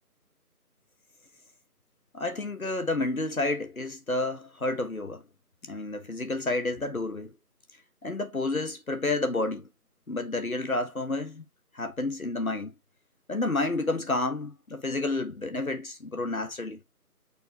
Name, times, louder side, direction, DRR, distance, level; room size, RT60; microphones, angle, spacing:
voice 1, 2.1-5.2 5.6-7.3 8.0-9.7 10.1-11.5 11.7-12.7 13.3-16.8, left 2 dB, 60° left, 1.3 m, -30 dB
7.2 x 4.4 x 3.3 m
figure-of-eight pair, 175°, 47 cm